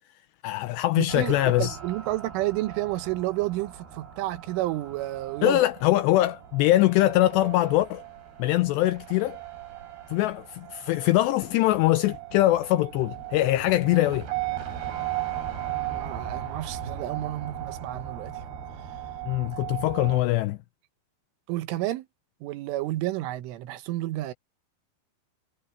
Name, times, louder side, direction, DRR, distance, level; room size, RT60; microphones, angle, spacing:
voice 1, 0.4-1.8 5.4-8.0 8.4-9.4 10.1-14.3 19.3-20.6, left 16 dB, 85° left, 2.5 m, -23 dB
voice 2, 1.0-5.6 15.7-18.4 21.5-22.1 22.4-24.3, right 16 dB, 90° right, 3.7 m, -31 dB
sound 1, 1.1-20.2, right 11 dB, 55° right, 6.8 m, -37 dB
omnidirectional pair, 5.5 m